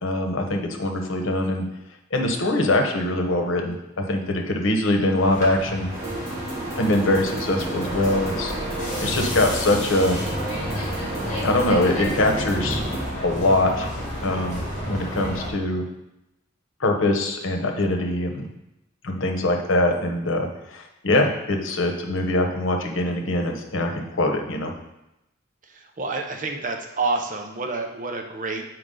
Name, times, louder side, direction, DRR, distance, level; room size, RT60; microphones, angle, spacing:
voice 1, 0.0-1.6 2.1-5.9 6.8-8.5 9.0-10.2 11.4-12.8 13.2-13.9 14.2-15.9 16.8-18.4 19.0-24.7, left 1 dB, 80° left, 3 dB, 1.0 m, -23 dB
sound 1, 5.2-15.5, equal, 40° left, 2.2 m, -31 dB
sound 2, 5.9-13.0, right 2 dB, 15° right, 2.1 m, -32 dB
voice 2, 25.7-28.6, right 3 dB, 40° right, 3 dB, 0.8 m, -28 dB
7.9 x 4.6 x 3.8 m, 0.89 s
head